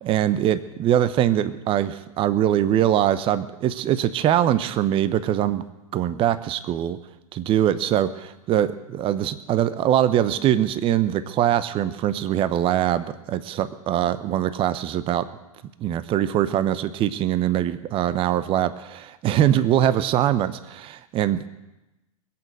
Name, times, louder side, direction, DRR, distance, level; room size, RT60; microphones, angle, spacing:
voice 1, 0.0-5.6 5.9-7.0 7.5-15.3 15.8-21.5, right 11 dB, 30° right, 14 dB, 0.8 m, -22 dB
21.0 x 8.7 x 7.9 m, 0.97 s
hypercardioid pair, 100°, 19 cm